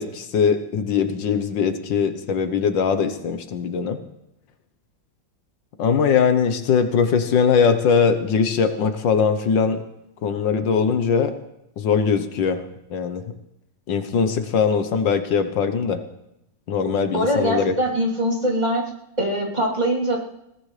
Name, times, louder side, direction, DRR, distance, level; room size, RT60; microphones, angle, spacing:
voice 1, 0.0-4.0 5.8-9.8 10.2-11.4 11.8-12.7 12.9-13.2 13.9-16.0 16.7-17.8, left 6 dB, 75° left, 8 dB, 1.7 m, -21 dB
voice 2, 17.1-18.8 19.2-20.2, right 1 dB, 20° right, -5 dB, 3.3 m, -22 dB
20.5 x 19.0 x 3.3 m, 0.87 s
omnidirectional pair, 2.0 m